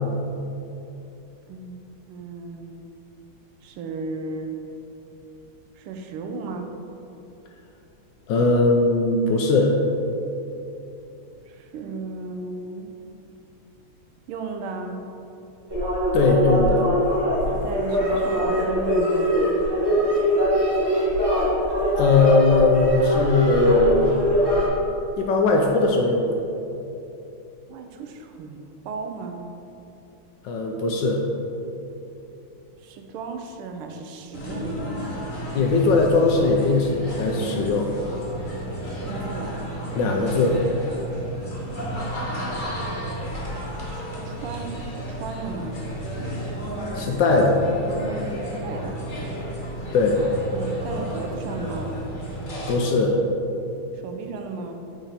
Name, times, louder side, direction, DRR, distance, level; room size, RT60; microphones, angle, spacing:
voice 1, 1.5-2.9 3.6-4.5 5.8-6.7 11.5-13.0 14.3-15.0 17.5-19.4 27.7-29.4 32.8-35.2 38.7-39.6 43.9-45.8 48.6-49.0 50.5-52.0 53.9-54.8, right 3 dB, 85° right, 5 dB, 1.5 m, -35 dB
voice 2, 8.3-9.8 16.1-16.9 22.0-24.2 25.2-26.4 30.4-31.2 35.5-37.9 39.9-40.7 47.0-47.6 49.9-50.2 52.7-53.2, left 3 dB, 75° left, 1 dB, 1.1 m, -19 dB
sound 1, 15.7-24.7, equal, 15° right, 1.3 m, -22 dB
sound 2, 34.3-52.7, right 1 dB, 35° left, 0.8 m, -32 dB
6.7 x 4.8 x 4.2 m, 2.8 s
omnidirectional pair, 2.3 m